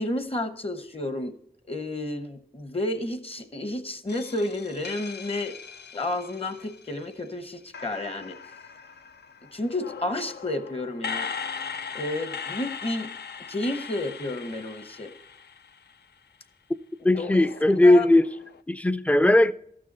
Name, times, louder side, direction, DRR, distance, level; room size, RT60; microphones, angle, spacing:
voice 1, 0.0-1.3 1.7-5.5 5.9-8.4 9.5-11.3 11.9-13.1 13.5-15.1 17.0-17.5 17.8-18.1, left 1 dB, 35° left, 0.9 m, -31 dB
sound 1, 4.1-7.3 7.7-16.1 17.1-18.6, left 6 dB, 80° left, 0.4 m, -39 dB
voice 2, 17.0-18.3 18.7-19.5, left 1 dB, 10° left, 0.4 m, -18 dB
14.0 x 6.2 x 4.1 m
wide cardioid pair, 60°, 17 cm